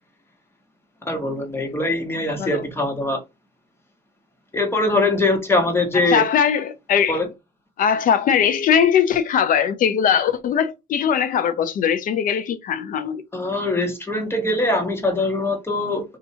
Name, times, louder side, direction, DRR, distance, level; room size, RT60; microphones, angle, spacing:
voice 1, 1.0-3.2 4.5-6.2 7.1-7.3 13.3-16.0, left 2 dB, 15° left, 1.3 m, -22 dB
voice 2, 5.9-7.2 7.8-13.2, left 8 dB, 55° left, 0.6 m, -20 dB
2.8 x 2.4 x 4.2 m
cardioid pair, 110°, 17 cm